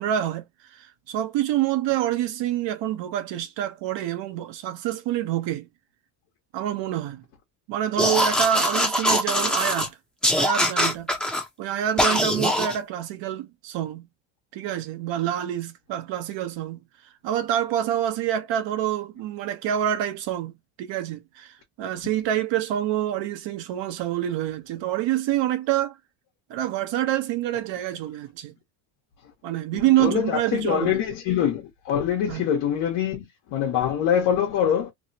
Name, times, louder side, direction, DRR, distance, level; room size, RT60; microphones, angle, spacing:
voice 1, 0.0-5.7 6.5-7.2 7.7-10.0 10.3-11.1 11.6-14.1 14.5-16.8 17.2-20.5 20.8-26.0 26.5-28.5 29.4-31.0 32.3-32.4, right 11 dB, 65° right, 0.9 m, -27 dB
sound 1, 8.0-9.9 10.2-11.4 12.0-12.8, left 1 dB, ahead, 0.7 m, -22 dB
voice 2, 29.7-33.2 33.5-34.9, left 9 dB, 75° left, 1.2 m, -24 dB
3.2 x 2.1 x 2.7 m
cardioid pair, 130°, 47 cm